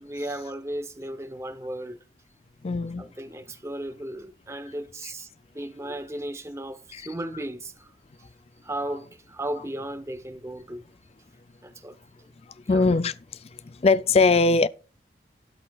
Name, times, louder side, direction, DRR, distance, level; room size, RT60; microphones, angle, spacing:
voice 1, 0.0-2.0 3.0-5.3 5.5-7.9 8.6-10.9 11.6-12.0 12.7-12.9, right 1 dB, 15° right, 0.7 m, -35 dB
voice 2, 2.6-3.1 5.0-5.1 6.9-7.1 12.7-14.7, left 3 dB, 35° left, 0.4 m, -22 dB
13.0 x 11.0 x 2.4 m
head